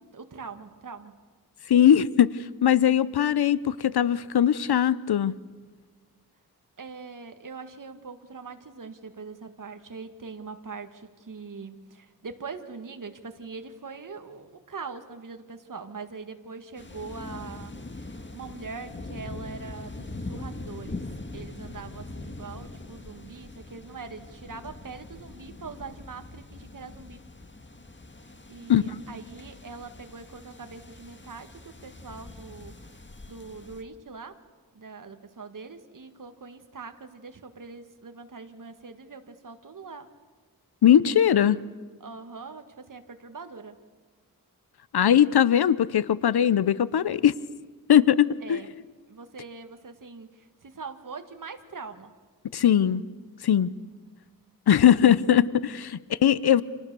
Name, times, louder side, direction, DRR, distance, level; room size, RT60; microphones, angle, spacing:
voice 1, 0.1-1.2 6.8-21.1 21.3-27.2 28.5-32.7 33.3-34.4 34.7-40.1 42.0-43.8 48.4-48.7 49.1-52.1, right 4 dB, 55° right, 7 dB, 1.8 m, -42 dB
voice 2, 1.7-5.4 28.7-29.0 40.8-41.6 44.9-47.3 47.9-48.6 52.5-53.0 53.4-53.7 54.7-56.6, left 10 dB, 85° left, 17 dB, 0.8 m, -20 dB
sound 1, 16.8-33.8, left 2 dB, 30° left, 2.0 m, -42 dB
30.0 x 27.5 x 6.9 m, 1.4 s
wide cardioid pair, 90°, 37 cm